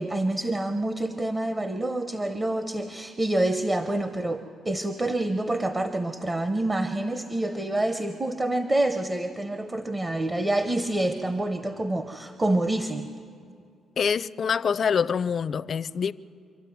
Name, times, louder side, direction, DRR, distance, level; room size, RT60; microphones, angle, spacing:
voice 1, 0.0-13.1, right 1 dB, 20° right, 0.8 m, -27 dB
voice 2, 14.0-16.1, left 6 dB, 50° left, 0.4 m, -25 dB
25.5 x 13.0 x 9.3 m
cardioid pair, 90°, 0 cm